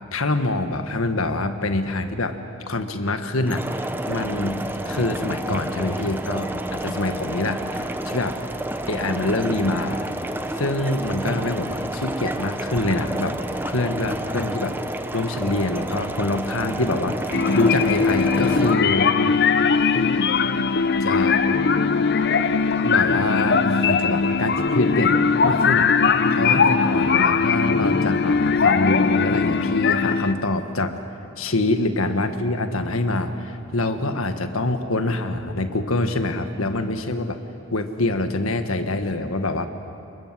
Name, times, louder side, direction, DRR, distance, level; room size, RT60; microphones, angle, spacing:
voice 1, 0.1-2.4 2.7-8.4 8.9-10.1 10.5-13.4 13.6-14.8 15.1-19.1 21.0-21.4 22.8-25.9 26.3-30.9 31.4-37.4 37.7-39.7, left 2 dB, 75° left, 7 dB, 1.7 m, -25 dB
sound 1, 3.5-18.7, right 1 dB, 10° right, 0.9 m, -30 dB
sound 2, 17.3-30.3, left 5 dB, 50° left, 0.7 m, -20 dB
27.5 x 22.5 x 7.6 m, 2.7 s
head